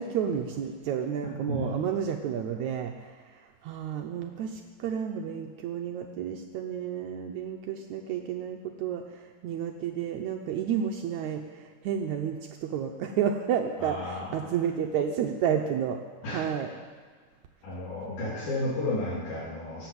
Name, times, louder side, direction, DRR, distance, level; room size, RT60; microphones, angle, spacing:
voice 1, 0.0-16.0 16.3-16.7, right 8 dB, 80° right, 4 dB, 1.7 m, -31 dB
voice 2, 13.8-14.5 16.2-16.4 17.6-19.9, left 1 dB, 80° left, -11 dB, 5.2 m, -32 dB
17.5 x 8.0 x 7.7 m, 1.6 s
omnidirectional pair, 4.2 m